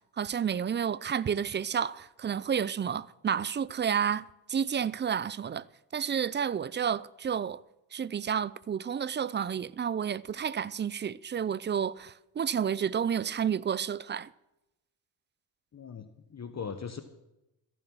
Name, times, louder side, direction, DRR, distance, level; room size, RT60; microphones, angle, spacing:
voice 1, 0.0-5.6 5.9-7.6 7.9-14.3, right 8 dB, 25° right, 0.4 m, -30 dB
voice 2, 15.7-17.0, left 6 dB, 35° left, 1.0 m, -40 dB
14.0 x 11.0 x 6.1 m
supercardioid pair, 75°, 48 cm